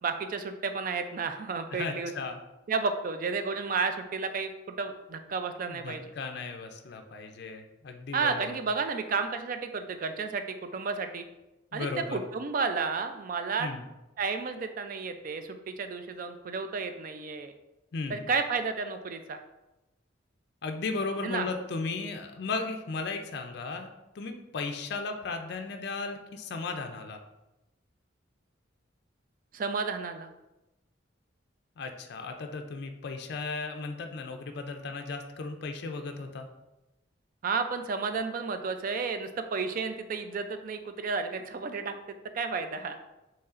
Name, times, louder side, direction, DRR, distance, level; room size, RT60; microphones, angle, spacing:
voice 1, 0.0-2.1 2.7-6.0 8.1-11.2 11.7-13.7 14.2-17.5 18.1-19.4 21.2-21.5 29.5-30.3 37.4-43.0, right 4 dB, 45° right, 8 dB, 0.3 m, -32 dB
voice 2, 1.7-2.4 5.7-8.6 11.7-12.2 13.6-13.8 17.9-18.2 20.6-23.9 24.1-27.2 31.8-36.5, left 4 dB, 55° left, 5 dB, 0.4 m, -35 dB
5.5 x 3.1 x 2.4 m, 0.97 s
head